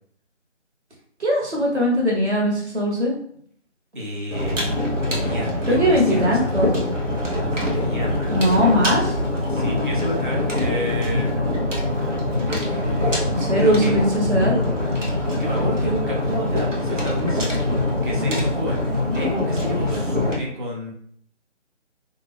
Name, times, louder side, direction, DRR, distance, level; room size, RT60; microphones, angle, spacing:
voice 1, 1.2-3.1 5.6-6.7 8.3-9.0 13.3-14.5 19.1-19.2, equal, 60° right, -3 dB, 1.5 m, -20 dB
voice 2, 3.9-4.6 5.1-6.5 7.4-8.8 9.5-11.4 12.4-14.0 15.3-17.6 17.8-20.9, equal, 40° right, -3 dB, 1.0 m, -30 dB
sound 1, 4.3-20.4, left 1 dB, 85° right, 1.2 m, -23 dB
2.6 x 2.5 x 3.4 m, 0.62 s
figure-of-eight pair, 160°, 37 cm